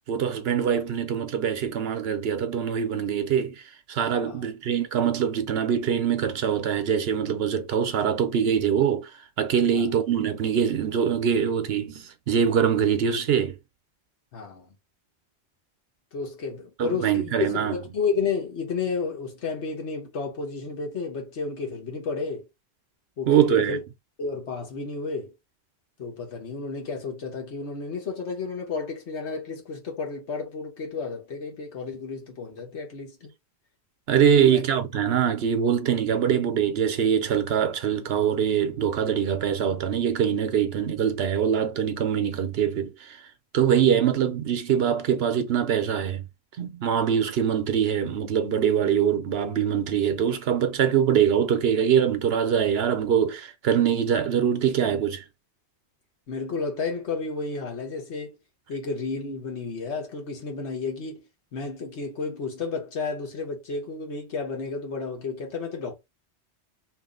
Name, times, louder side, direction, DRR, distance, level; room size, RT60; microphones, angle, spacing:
voice 1, 0.1-3.5 3.9-9.1 9.4-13.6 16.8-17.8 23.3-23.8 34.1-43.2 43.5-46.3 46.6-55.2, right 8 dB, 65° right, 0.9 m, -23 dB
voice 2, 14.3-14.8 16.1-22.5 23.2-23.8 24.2-25.3 26.0-33.3 34.4-34.6 56.3-58.4 58.7-61.2 61.5-65.9, left 4 dB, 85° left, 1.4 m, -32 dB
3.0 x 2.6 x 3.7 m
omnidirectional pair, 1.1 m